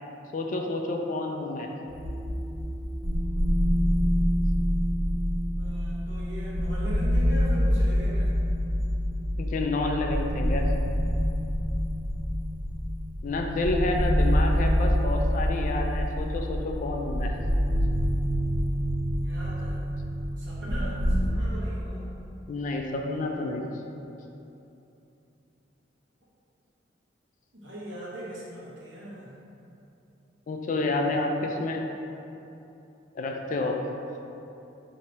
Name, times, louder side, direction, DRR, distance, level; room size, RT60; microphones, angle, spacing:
voice 1, 0.3-1.7 9.4-10.7 13.2-17.3 22.5-23.7 30.5-31.8 33.2-33.8, left 2 dB, 45° left, 2 dB, 0.3 m, -29 dB
sound 1, 1.9-21.3, equal, 90° right, 0.8 m, -26 dB
voice 2, 5.6-8.3 17.3-17.4 19.1-19.8 20.4-22.1 27.5-29.3, equal, 70° right, -7 dB, 1.0 m, -40 dB
3.0 x 2.8 x 4.5 m, 2.9 s
head